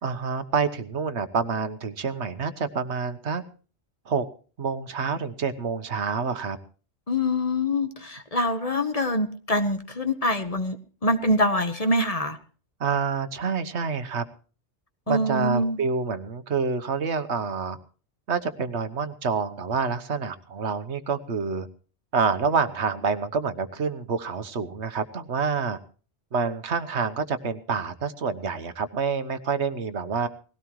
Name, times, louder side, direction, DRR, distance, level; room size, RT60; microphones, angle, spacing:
voice 1, 0.0-3.4 4.1-4.3 4.6-6.6 12.8-14.2 15.1-17.8 18.3-21.7 22.1-25.8 26.3-30.3, right 5 dB, 80° right, 10 dB, 1.4 m, -27 dB
voice 2, 7.1-12.4 15.1-15.8, left 1 dB, 35° left, 9 dB, 1.3 m, -25 dB
19.5 x 16.5 x 3.1 m, 0.39 s
omnidirectional pair, 1.1 m